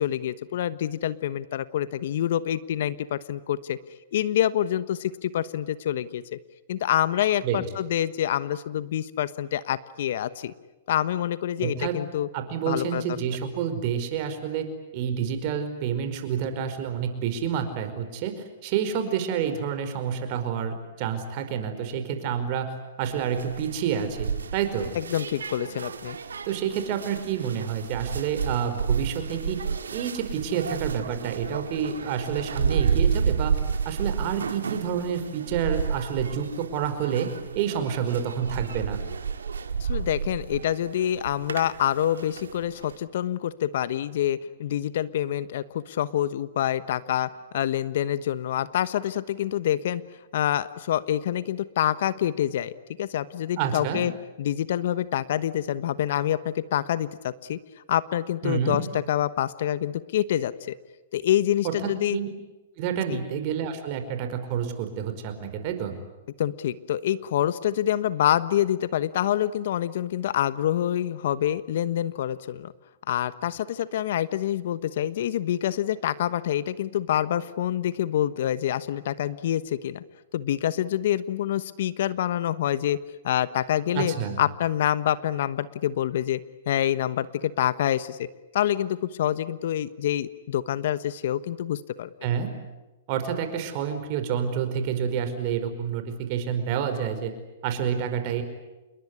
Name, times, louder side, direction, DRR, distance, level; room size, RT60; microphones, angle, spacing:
voice 1, 0.0-3.8 4.1-6.4 6.7-10.5 10.9-12.3 12.6-13.0 24.9-26.2 39.8-50.0 50.3-52.7 53.0-54.1 54.4-57.6 57.9-60.8 61.1-62.2 63.1-63.2 66.4-72.7 73.1-80.0 80.3-83.0 83.2-86.4 86.7-88.3 88.5-92.1, left 11 dB, 60° left, 16 dB, 1.1 m, -26 dB
voice 2, 11.6-12.0 12.3-14.7 14.9-25.0 26.4-29.6 29.9-37.3 37.5-39.0 53.6-54.0 58.4-58.8 61.6-62.3 62.8-65.9 83.9-84.4 92.2-92.5 93.1-97.3 97.6-98.4, right 8 dB, 45° right, 8 dB, 5.0 m, -29 dB
sound 1, 23.0-43.0, right 6 dB, 85° right, 2.0 m, -31 dB
28.0 x 22.0 x 9.7 m, 1.1 s
hypercardioid pair, 120°, 0 cm